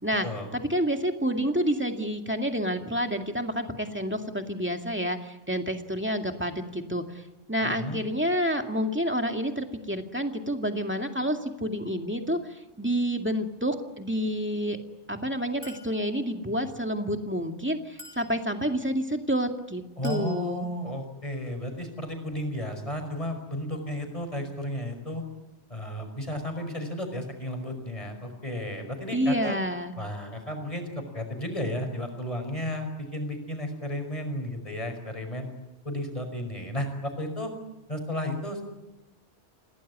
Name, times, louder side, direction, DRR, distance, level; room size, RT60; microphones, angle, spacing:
voice 1, 0.5-7.0 7.5-12.4 12.8-14.8 15.1-20.7 29.1-29.9, equal, 10° right, 4 dB, 2.1 m, -29 dB
voice 2, 7.6-8.0 20.0-25.2 25.7-29.6 30.0-35.5 35.8-37.5 37.9-38.6, left 1 dB, 30° left, 5 dB, 5.5 m, -33 dB
Chink clink, 15.6-16.0 18.0-18.3 20.0-20.4, left 1 dB, 55° right, 7.6 m, -45 dB
27.5 x 18.0 x 9.5 m, 1.0 s
omnidirectional pair, 1.2 m